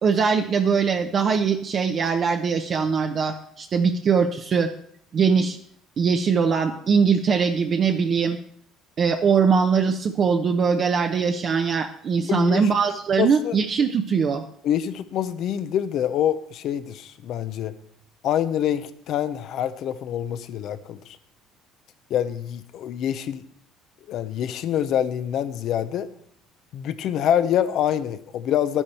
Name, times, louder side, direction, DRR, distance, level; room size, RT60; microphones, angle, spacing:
voice 1, 0.0-4.7 5.1-5.6 6.0-8.4 9.0-14.4, right 6 dB, 45° right, 4 dB, 0.9 m, -21 dB
voice 2, 12.3-12.7 13.2-13.6 14.6-17.7 18.2-21.2 22.1-23.4 24.1-26.1 26.7-28.8, left 10 dB, 65° left, 12 dB, 0.8 m, -25 dB
11.0 x 10.0 x 4.4 m, 0.64 s
supercardioid pair, 95°, 0 cm